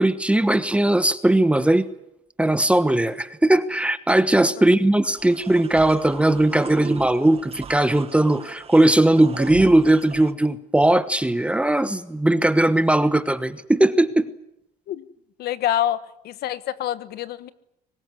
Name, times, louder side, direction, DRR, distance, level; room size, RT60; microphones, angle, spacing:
voice 1, 0.0-1.9 2.4-14.3, right 1 dB, 5° right, 12 dB, 1.2 m, -19 dB
sound 1, 5.2-10.3, right 6 dB, 35° right, 1.7 m, -39 dB
voice 2, 15.4-16.0 16.2-17.5, left 11 dB, 70° left, 15 dB, 1.4 m, -26 dB
24.0 x 20.0 x 9.8 m, 0.81 s
cardioid pair, 120°, 17 cm